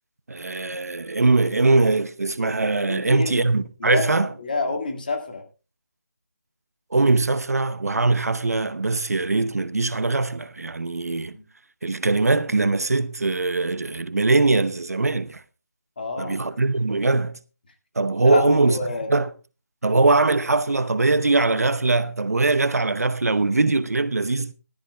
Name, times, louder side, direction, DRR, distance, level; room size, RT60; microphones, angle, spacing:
voice 1, 0.3-4.3 6.9-11.4 11.8-15.4 16.2-17.4 18.0-18.8 19.1-19.3 19.8-24.5, right 3 dB, 65° right, 0.8 m, -21 dB
voice 2, 2.9-3.5 3.8-5.4 11.3-11.4 16.0-16.4 18.2-19.1, left 3 dB, 30° left, 2.0 m, -28 dB
19.5 x 13.5 x 2.2 m
figure-of-eight pair, 175°, 9 cm